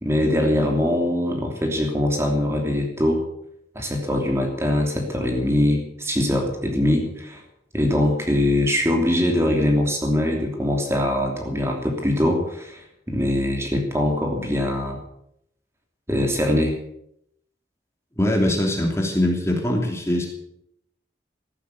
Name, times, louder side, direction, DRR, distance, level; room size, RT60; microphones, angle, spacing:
voice 1, 0.0-3.2 3.7-7.4 7.7-15.0 16.1-16.7, left 1 dB, 15° right, 1 dB, 3.0 m, -22 dB
voice 2, 18.2-20.3, left 1 dB, 15° left, 1 dB, 2.9 m, -22 dB
15.0 x 11.5 x 8.3 m, 0.76 s
head